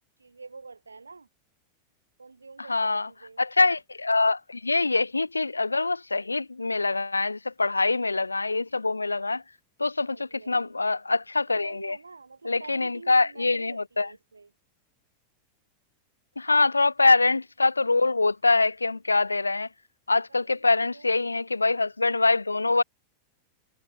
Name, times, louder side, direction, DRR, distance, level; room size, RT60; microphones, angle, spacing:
voice 1, 0.2-1.3 2.2-3.4 10.1-10.7 11.5-14.5 16.5-16.7 20.3-20.6 20.9-21.2, right 4 dB, 80° right, 7.1 m, -47 dB
voice 2, 2.7-3.1 3.4-9.4 9.8-12.0 12.4-14.1 16.4-19.7 20.1-22.8, left 3 dB, 80° left, 1.1 m, -24 dB
figure-of-eight pair, 90°, 0 cm